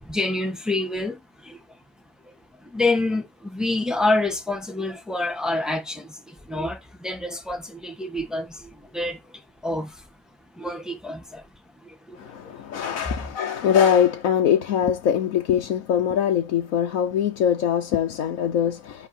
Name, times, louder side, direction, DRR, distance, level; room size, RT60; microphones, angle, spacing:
voice 1, 0.0-1.6 2.6-10.0 10.5-11.4 11.8-12.5, left 2 dB, ahead, 1.1 m, -28 dB
voice 2, 12.1-19.1, left 9 dB, 70° left, 1.2 m, -22 dB
11.0 x 3.7 x 4.3 m
omnidirectional pair, 1.5 m